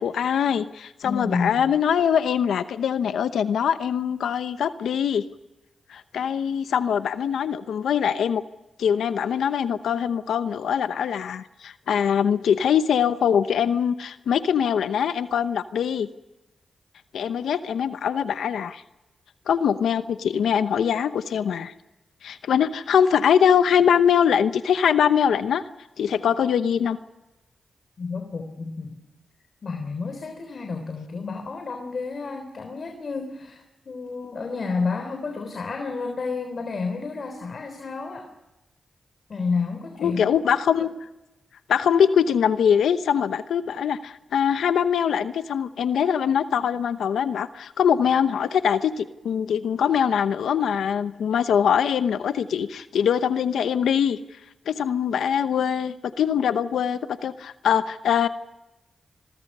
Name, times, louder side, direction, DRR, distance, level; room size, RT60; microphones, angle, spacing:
voice 1, 0.0-5.2 5.9-8.4 8.8-16.1 17.1-18.8 19.5-21.7 22.2-25.6 26.0-27.0 40.0-40.9 41.7-54.2 54.7-58.3, left 8 dB, 90° left, 11 dB, 0.9 m, -23 dB
voice 2, 1.0-1.7 28.0-29.0 29.6-38.3 39.3-40.5, left 4 dB, 60° left, 6 dB, 3.5 m, -30 dB
29.5 x 22.5 x 5.5 m, 0.97 s
cardioid pair, 60°, 0 cm